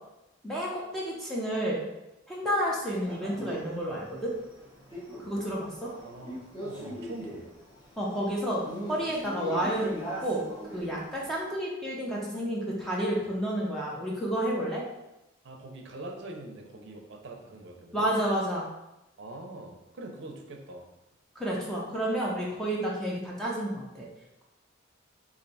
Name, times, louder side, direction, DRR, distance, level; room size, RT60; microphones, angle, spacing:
voice 1, 0.4-1.8 2.3-4.4 5.2-5.9 8.0-10.5 10.7-14.8 17.9-18.7 21.4-24.1, right 1 dB, ahead, -5 dB, 0.5 m, -30 dB
Male speech man speaking, 2.9-11.4, equal, 20° left, 1.0 m, -41 dB
voice 2, 5.8-7.5 15.4-18.1 19.2-20.9, right 2 dB, 60° right, 2 dB, 0.6 m, -43 dB
3.2 x 2.6 x 4.0 m, 0.94 s
head